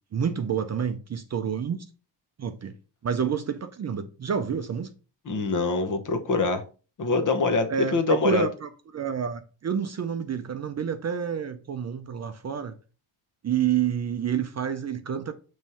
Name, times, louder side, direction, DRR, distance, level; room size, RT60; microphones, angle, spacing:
voice 1, 0.1-1.8 2.4-2.7 3.0-4.9 7.7-12.8 13.4-15.3, right 7 dB, 35° right, 0.5 m, -28 dB
voice 2, 5.3-6.6 7.0-8.5, left 4 dB, 40° left, 0.9 m, -24 dB
7.1 x 3.2 x 5.5 m
wide cardioid pair, 180°, 46 cm